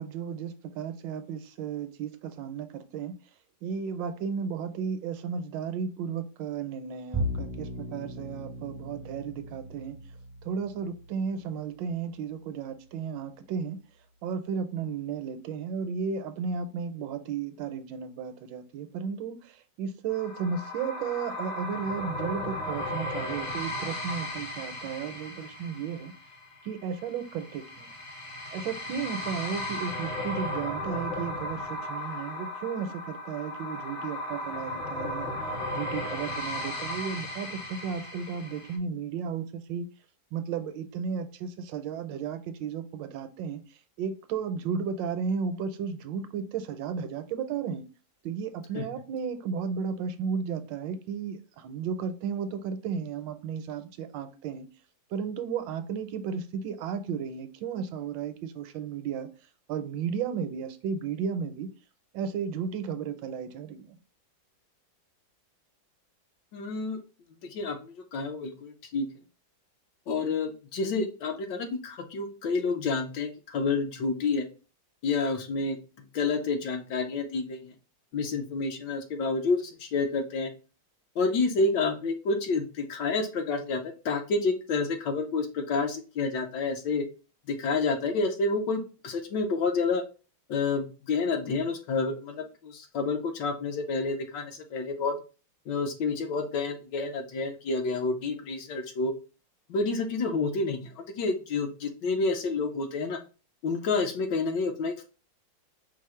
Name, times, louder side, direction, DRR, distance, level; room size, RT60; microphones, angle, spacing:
voice 1, 0.0-3.1 3.6-10.0 10.4-13.8 14.2-26.1 26.6-28.0 28.5-35.3 35.7-39.9 40.3-43.6 44.0-47.8 48.2-54.7 55.1-59.3 59.7-61.7 62.1-64.0, right 6 dB, 80° right, 1.2 m, -34 dB
Bowed string instrument, 7.1-13.6, equal, 20° right, 0.5 m, -38 dB
sound 1, 20.1-38.8, left 1 dB, 45° left, 0.6 m, -36 dB
voice 2, 66.5-67.0 67.4-69.1 70.1-74.4 75.0-75.8 76.1-77.7 78.1-80.5 81.2-83.8 84.0-87.0 87.5-90.0 90.5-95.1 95.7-99.1 99.7-103.2 103.6-105.0, left 3 dB, 70° left, 1.3 m, -29 dB
4.8 x 2.0 x 4.2 m
omnidirectional pair, 2.1 m